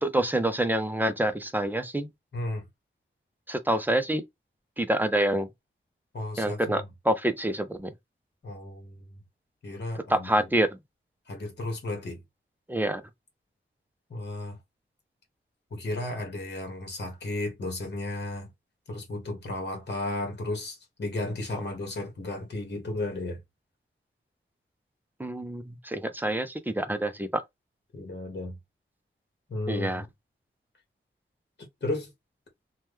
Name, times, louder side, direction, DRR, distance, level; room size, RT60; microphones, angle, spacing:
voice 1, 0.0-2.1 3.5-4.2 4.8-5.5 6.4-7.9 10.1-10.7 12.7-13.0 25.2-27.3 29.7-30.0, right 1 dB, 10° right, 0.4 m, -27 dB
voice 2, 2.3-2.6 6.1-6.8 8.4-9.2 9.6-10.5 11.3-12.2 14.1-14.6 15.7-18.5 18.9-23.4 27.9-28.6 29.5-30.1 31.8-32.1, left 2 dB, 55° left, 1.2 m, -34 dB
2.9 x 2.2 x 3.4 m
wide cardioid pair, 135°, 21 cm